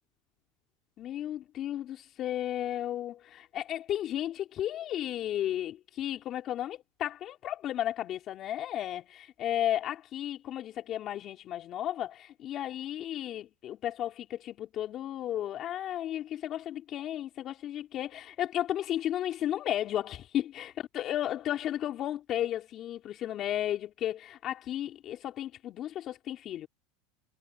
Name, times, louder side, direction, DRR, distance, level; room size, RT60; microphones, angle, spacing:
voice 1, 1.0-26.7, left 12 dB, 40° left, 3.5 m, -34 dB
supercardioid pair, 120°, 0 cm